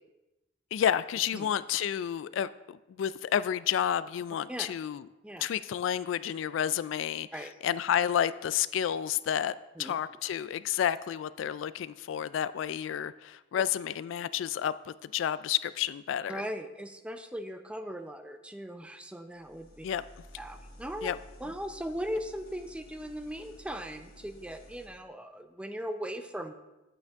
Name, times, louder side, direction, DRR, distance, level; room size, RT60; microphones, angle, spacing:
voice 1, 0.7-5.1 5.4-16.4 19.8-20.0 21.0-21.2, left 9 dB, 75° left, 16 dB, 0.3 m, -30 dB
voice 2, 16.3-19.9 20.4-21.1 21.4-26.5, equal, 5° right, 8 dB, 0.5 m, -38 dB
sound 1, 19.3-24.9, equal, 50° left, 1.6 m, -53 dB
9.1 x 8.3 x 3.5 m, 1.0 s
head